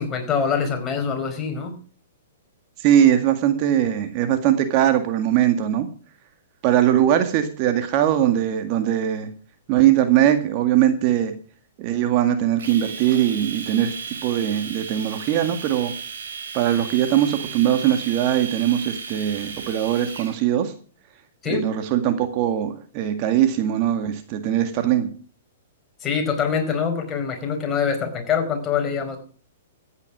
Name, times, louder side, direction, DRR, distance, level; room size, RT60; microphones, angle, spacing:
voice 1, 0.0-1.8 21.4-21.7 26.0-29.2, left 6 dB, 20° left, 3 dB, 4.6 m, -24 dB
voice 2, 2.8-5.9 6.6-9.3 9.7-11.3 11.8-13.9 14.2-15.9 16.5-20.7 21.5-25.1, right 11 dB, 40° right, 7 dB, 1.9 m, -20 dB
Domestic sounds home sounds, 12.6-20.4, right 5 dB, 75° right, 5.1 m, -35 dB
14.5 x 9.8 x 6.2 m, 0.43 s
hypercardioid pair, 125°, 0 cm